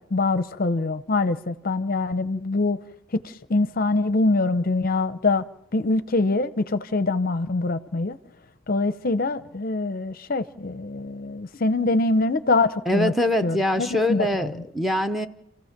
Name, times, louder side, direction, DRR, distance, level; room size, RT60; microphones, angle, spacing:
voice 1, 0.1-2.8 3.1-5.4 5.7-8.2 8.7-13.1 13.4-14.5, left 3 dB, 40° left, 0.6 m, -24 dB
voice 2, 12.9-15.3, left 1 dB, ahead, 0.6 m, -23 dB
29.0 x 15.5 x 5.9 m
head